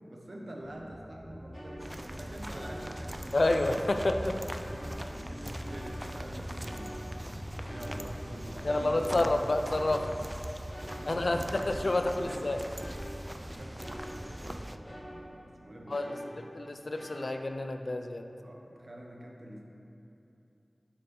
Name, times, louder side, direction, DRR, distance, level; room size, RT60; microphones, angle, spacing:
voice 1, 0.1-3.4 4.9-9.6 10.9-12.6 13.4-16.3 18.4-19.6, right 1 dB, 70° right, -1 dB, 0.9 m, -46 dB
sound 1, 0.6-12.0, equal, 5° left, 1.3 m, -45 dB
sound 2, 1.5-2.2 2.5-3.3 3.6-5.3 5.6-6.4 6.6-9.4 9.7-11.4 11.7-14.6 14.8-15.5 15.9-17.5, equal, 35° left, 1.5 m, -47 dB
sound 3, 1.8-14.8, right 1 dB, 15° right, 0.3 m, -41 dB
voice 2, 3.3-4.6 8.6-10.0 11.1-12.6 15.9-16.1 16.6-18.2, left 2 dB, 70° left, 6 dB, 0.4 m, -29 dB
6.9 x 4.6 x 5.2 m, 2.7 s
wide cardioid pair, 50°, 0 cm